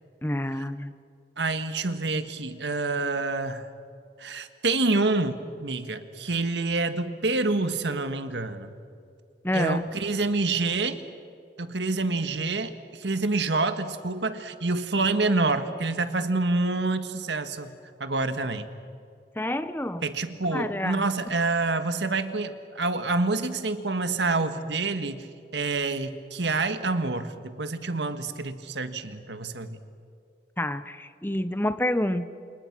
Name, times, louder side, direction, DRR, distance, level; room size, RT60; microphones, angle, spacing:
voice 1, 0.2-0.9 9.4-9.8 19.4-20.0 20.5-21.0 30.6-32.3, left 1 dB, 10° left, 12 dB, 0.8 m, -28 dB
voice 2, 1.4-3.7 4.2-8.7 9.5-11.0 11.6-17.7 18.0-18.7 20.0-25.3 25.5-29.8, right 3 dB, 85° right, 9 dB, 1.6 m, -27 dB
28.5 x 28.0 x 6.1 m, 2.5 s
head